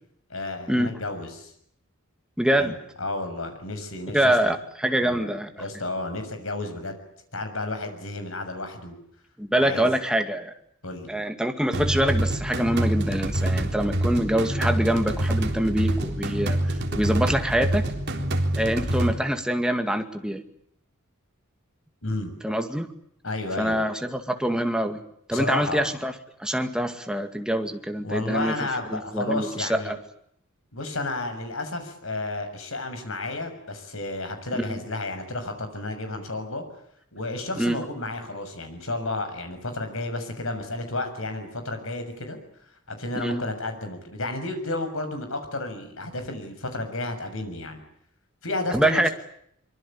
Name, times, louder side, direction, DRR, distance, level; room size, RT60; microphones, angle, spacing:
voice 1, 0.3-1.5 2.6-4.6 5.0-5.3 5.6-7.0 7.3-8.9 9.6-9.9 10.8-11.1 22.0-22.3 23.2-23.8 25.3-25.9 28.0-30.0 30.7-36.6 37.1-42.4 42.9-47.8 48.4-49.1, left 2 dB, 70° left, 7 dB, 6.7 m, -32 dB
voice 2, 2.4-2.8 4.1-5.5 9.4-10.5 11.1-17.9 18.6-20.4 22.4-22.9 23.6-25.0 25.3-26.1 26.4-30.0 34.6-34.8 37.6-37.8 43.2-43.4 48.7-49.1, right 1 dB, 5° right, 6 dB, 2.2 m, -25 dB
sound 1, 11.7-19.1, right 1 dB, 55° right, 3.8 m, -26 dB
24.5 x 24.0 x 8.7 m, 0.72 s
head